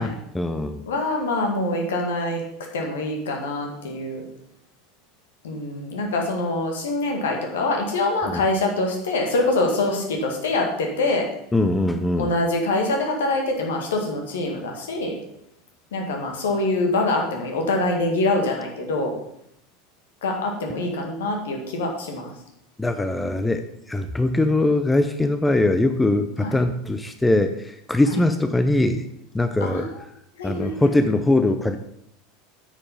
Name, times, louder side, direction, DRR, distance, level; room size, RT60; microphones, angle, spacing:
voice 1, 0.0-0.8 8.3-8.4 11.5-12.3 22.8-29.0 29.3-29.9 30.4-31.8, left 2 dB, 10° left, 8 dB, 0.6 m, -21 dB
voice 2, 0.9-2.4 2.7-4.2 5.4-11.3 12.2-15.1 15.9-19.1 20.2-22.3 23.2-23.3 26.4-26.5 29.6-29.8 30.4-30.9, left 2 dB, 65° left, 1 dB, 1.9 m, -24 dB
8.8 x 6.7 x 5.3 m, 0.75 s
figure-of-eight pair, 75°, 0 cm